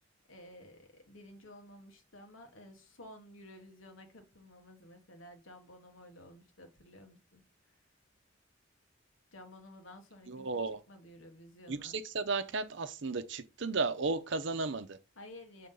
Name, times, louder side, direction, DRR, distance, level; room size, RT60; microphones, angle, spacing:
voice 1, 0.3-7.8 9.3-10.5 10.9-12.0 15.1-15.7, left 1 dB, 75° left, 1.4 m, -53 dB
voice 2, 10.3-10.8 11.7-15.0, right 3 dB, 60° right, 0.7 m, -34 dB
6.9 x 3.7 x 3.8 m
head